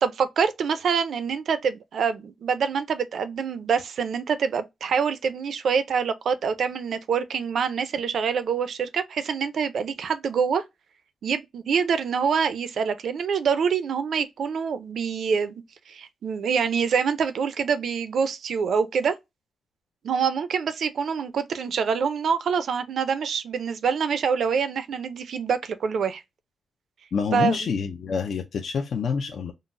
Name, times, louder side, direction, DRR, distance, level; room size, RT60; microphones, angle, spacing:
voice 1, 0.0-10.6 11.2-19.1 20.0-26.2 27.3-27.6, right 6 dB, 70° right, 0.4 m, -25 dB
voice 2, 27.1-29.5, left 5 dB, 65° left, 0.5 m, -27 dB
3.7 x 2.0 x 2.5 m
wide cardioid pair, 120°, 0 cm